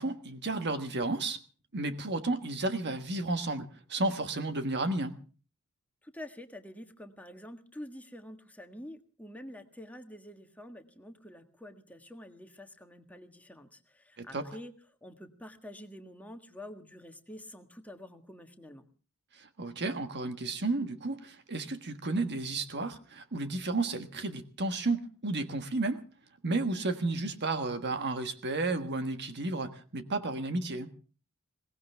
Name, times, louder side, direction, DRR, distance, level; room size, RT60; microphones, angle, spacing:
voice 1, 0.0-1.4 1.7-5.2 14.2-14.5 19.3-26.0 26.4-30.9, right 2 dB, 50° right, 8 dB, 1.5 m, -32 dB
voice 2, 6.0-14.7 15.0-18.8, left 1 dB, 5° left, 5 dB, 1.6 m, -47 dB
22.0 x 18.5 x 3.5 m, 0.38 s
head